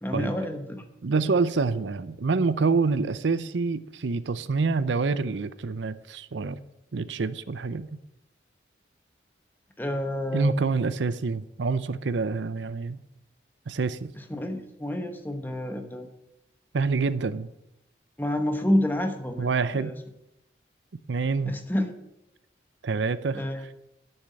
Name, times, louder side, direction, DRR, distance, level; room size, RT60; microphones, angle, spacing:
voice 1, 0.0-0.8 9.8-10.6 14.2-16.1 18.2-19.5 19.7-20.0 21.4-21.9 23.3-23.6, left 1 dB, 10° left, 5 dB, 1.0 m, -29 dB
voice 2, 1.0-6.6 6.9-7.9 10.3-13.0 13.7-14.1 16.7-17.5 19.4-19.9 21.1-21.5 22.8-23.4, right 4 dB, 85° right, 15 dB, 0.6 m, -26 dB
9.7 x 7.1 x 7.7 m, 0.87 s
head